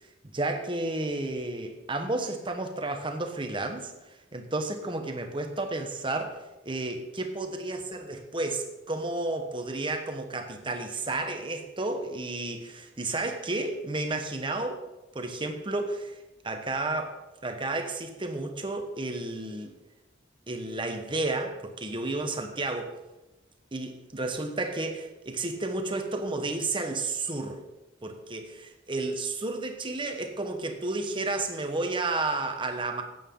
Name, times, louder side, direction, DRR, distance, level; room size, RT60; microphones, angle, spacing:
voice 1, 0.3-3.9 4.3-14.8 15.1-16.2 16.4-17.2 17.4-19.7 20.5-22.9 23.7-27.6 28.0-33.0, right 2 dB, 25° right, 5 dB, 1.2 m, -32 dB
14.5 x 9.2 x 3.9 m, 1.0 s
head